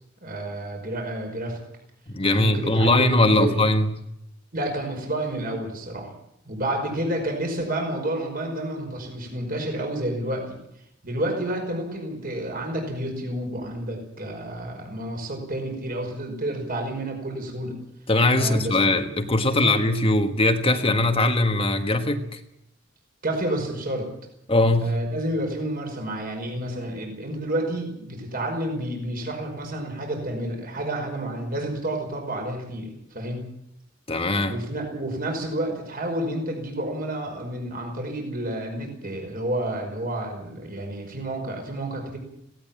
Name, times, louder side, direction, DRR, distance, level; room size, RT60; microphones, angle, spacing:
voice 1, 0.2-1.6 2.3-3.6 4.5-6.1 6.5-10.6 11.0-17.8 18.3-18.8 19.6-19.8 23.2-24.1 24.8-33.4 34.5-42.2, right 1 dB, 45° right, 2 dB, 5.5 m, -30 dB
voice 2, 2.1-3.9 18.1-22.4 24.5-25.0 34.1-34.6, left 2 dB, 30° left, 6 dB, 1.5 m, -21 dB
17.5 x 17.5 x 8.9 m, 0.78 s
head